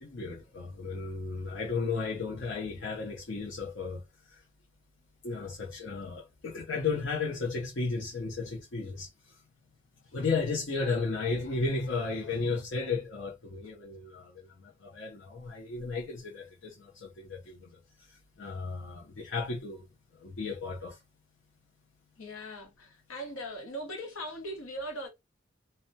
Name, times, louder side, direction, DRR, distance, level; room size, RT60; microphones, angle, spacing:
voice 1, 0.0-4.0 4.3-4.4 5.2-9.1 10.1-17.8 18.1-19.9 20.2-21.0, left 4 dB, 60° left, 0.6 m, -34 dB
voice 2, 22.2-25.1, equal, 85° left, 0.9 m, -39 dB
2.2 x 2.2 x 2.6 m
head